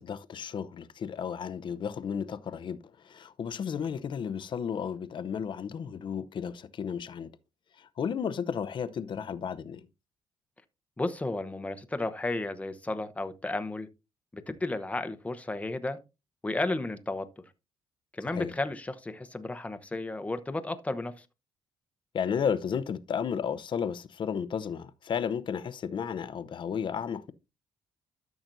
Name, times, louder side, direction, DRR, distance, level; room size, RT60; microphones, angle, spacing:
voice 1, 0.0-2.8 3.1-7.3 7.8-9.8 18.3-18.5 22.1-27.3, left 7 dB, 50° left, 0.7 m, -33 dB
voice 2, 11.0-13.9 14.3-16.0 16.4-17.3 18.1-21.2, left 2 dB, 15° left, 0.9 m, -33 dB
13.0 x 6.0 x 2.6 m
cardioid pair, 80°, 10 cm